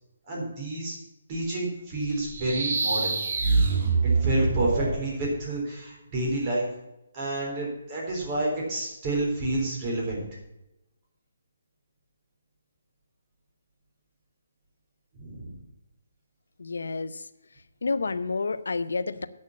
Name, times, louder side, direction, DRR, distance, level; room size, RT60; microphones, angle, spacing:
voice 1, 0.3-1.0 1.3-3.1 4.2-6.7 7.1-10.2 15.1-15.6, right 2 dB, 25° right, -3 dB, 3.8 m, -29 dB
sound 1, 2.2-5.0, right 4 dB, 50° right, 1.9 m, -25 dB
voice 2, 16.6-17.3 17.8-19.3, left 4 dB, 85° left, 13 dB, 0.7 m, -29 dB
9.0 x 6.4 x 7.2 m, 0.93 s
hypercardioid pair, 165°, 0 cm